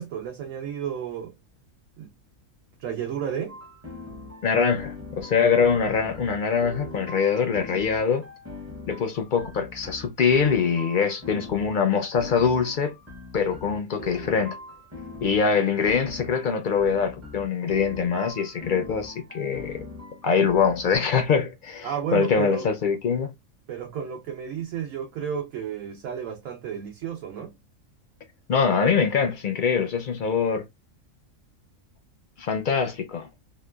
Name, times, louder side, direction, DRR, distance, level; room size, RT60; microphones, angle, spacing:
voice 1, 0.0-1.4 2.0-2.1 2.8-3.6 21.8-22.7 23.7-27.5, right 8 dB, 80° right, 1.0 m, -32 dB
sound 1, 3.5-21.0, left 2 dB, 15° right, 0.5 m, -42 dB
voice 2, 4.4-8.2 8.9-12.9 13.3-14.6 15.2-19.8 20.2-23.3 28.5-30.6 32.4-33.3, left 6 dB, 60° left, 0.5 m, -23 dB
2.9 x 2.2 x 2.2 m
omnidirectional pair, 1.4 m